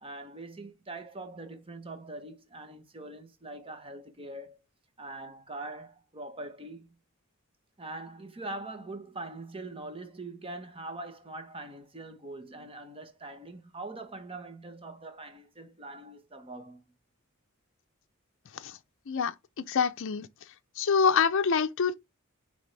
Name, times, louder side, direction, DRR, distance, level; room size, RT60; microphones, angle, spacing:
voice 1, 0.0-4.6 5.0-7.0 7.8-16.8, right 2 dB, 25° right, 1.1 m, -42 dB
voice 2, 19.7-20.3 20.8-21.9, left 6 dB, 60° left, 0.5 m, -25 dB
9.2 x 3.5 x 3.3 m
head